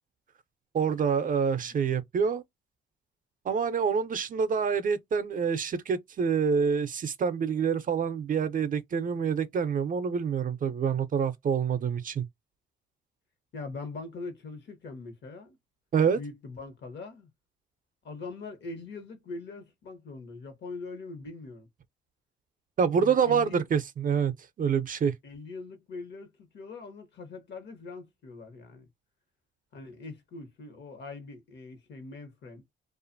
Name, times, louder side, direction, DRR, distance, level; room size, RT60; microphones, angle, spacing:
voice 1, 0.7-2.4 3.5-12.3 15.9-16.2 22.8-25.1, right 6 dB, 45° right, 0.5 m, -27 dB
voice 2, 13.5-15.6 16.1-17.3 18.0-21.7 23.0-23.6 25.2-28.9 29.7-32.6, left 3 dB, 60° left, 1.1 m, -42 dB
2.5 x 2.4 x 2.5 m
cardioid pair, 90°, 20 cm